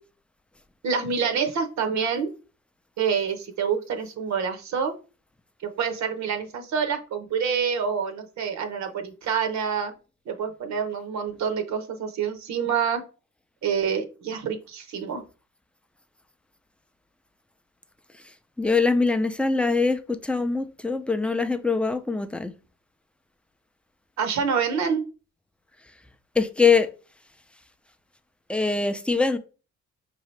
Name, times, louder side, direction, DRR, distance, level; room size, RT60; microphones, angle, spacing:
voice 1, 0.8-2.3 3.0-4.9 5.6-9.9 10.3-13.0 13.6-15.2 24.2-25.0, right 6 dB, 65° right, 0.7 m, -27 dB
voice 2, 18.2-22.5 26.4-26.9 28.5-29.4, left 4 dB, 5° left, 0.4 m, -23 dB
4.8 x 2.8 x 3.1 m
cardioid pair, 90°, 30 cm